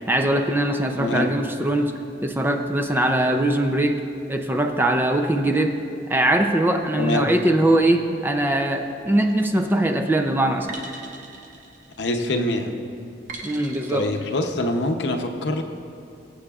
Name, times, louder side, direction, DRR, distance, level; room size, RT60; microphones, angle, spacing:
voice 1, 0.1-1.9 2.2-4.0 4.3-5.8 6.1-10.8 13.4-14.2, right 1 dB, 10° right, 5 dB, 0.4 m, -21 dB
voice 2, 1.0-1.3 7.0-7.3 12.0-12.7 13.9-15.6, left 1 dB, 65° left, 4 dB, 0.7 m, -24 dB
sound 1, 9.2-9.6 10.7-12.3 13.3-14.3, right 3 dB, 45° right, 1.0 m, -40 dB
22.0 x 7.7 x 2.4 m, 2.6 s
head